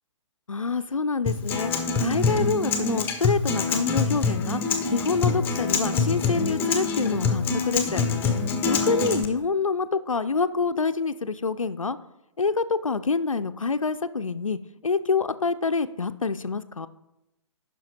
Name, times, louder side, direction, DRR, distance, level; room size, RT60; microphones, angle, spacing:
voice 1, 0.5-1.7 2.0-4.6 4.9-8.0 8.6-12.0 12.4-16.9, left 4 dB, 85° left, 10 dB, 0.4 m, -26 dB
Acoustic guitar, 1.3-9.2, left 4 dB, 10° left, 0.7 m, -25 dB
9.7 x 5.7 x 4.1 m, 0.91 s
figure-of-eight pair, 130°, 17 cm